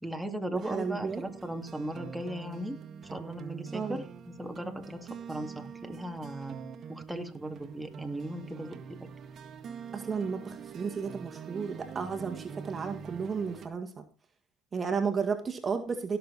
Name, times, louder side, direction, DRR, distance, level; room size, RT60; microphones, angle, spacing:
voice 1, 0.0-2.8 3.1-6.6 6.9-9.0, right 1 dB, 5° right, 4 dB, 2.4 m, -38 dB
voice 2, 0.5-1.2 3.7-4.0 9.9-14.0 14.7-16.2, right 5 dB, 30° right, 6 dB, 1.9 m, -33 dB
sound 1, 0.6-13.7, right 6 dB, 45° right, 1.8 m, -44 dB
17.0 x 6.9 x 4.2 m, 0.31 s
hypercardioid pair, 75°, 0 cm